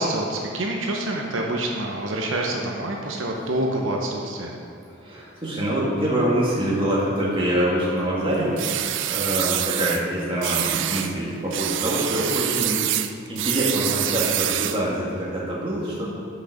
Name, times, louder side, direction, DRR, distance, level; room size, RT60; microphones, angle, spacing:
voice 1, 0.0-4.6, right 1 dB, 90° right, 0 dB, 0.9 m, -27 dB
voice 2, 5.0-12.9 13.3-16.1, right 1 dB, 25° right, -6 dB, 1.9 m, -25 dB
sound 1, 8.6-10.0 10.4-11.1 11.5-14.9, right 12 dB, 65° right, 0.4 m, -26 dB
6.3 x 6.2 x 5.9 m, 2.6 s
head